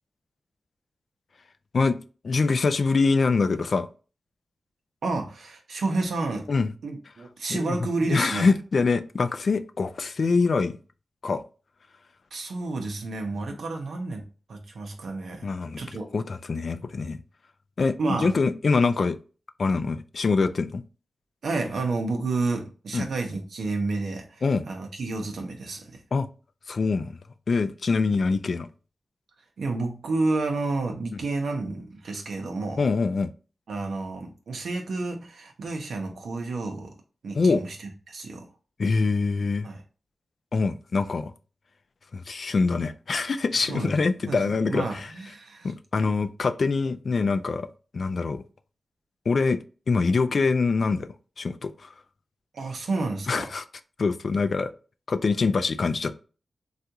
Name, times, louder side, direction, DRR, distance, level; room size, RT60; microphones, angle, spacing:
voice 1, 2.2-3.9 6.5-6.7 7.5-7.8 8.0-10.7 11.2-11.4 15.4-15.8 16.1-17.2 17.8-19.2 19.6-20.8 22.9-23.1 24.4-24.6 26.1-26.3 26.7-27.1 27.5-28.7 32.8-33.3 37.3-37.6 38.8-39.7 40.5-41.3 42.1-45.1 45.6-47.7 47.9-48.4 49.3-49.6 49.9-51.1 51.4-51.9 53.3-53.6 54.0-54.7 55.1-56.1, left 4 dB, 65° left, 0.3 m, -24 dB
voice 2, 5.0-6.5 6.8-8.5 12.3-14.2 14.5-15.5 15.8-16.1 18.0-18.3 21.4-26.0 29.6-32.8 33.7-36.9 37.2-37.8 38.1-38.5 39.6-39.8 43.6-43.9 44.3-45.7 52.5-53.5, right 3 dB, 85° right, 0.7 m, -30 dB
3.5 x 2.4 x 2.8 m
cardioid pair, 60°, 0 cm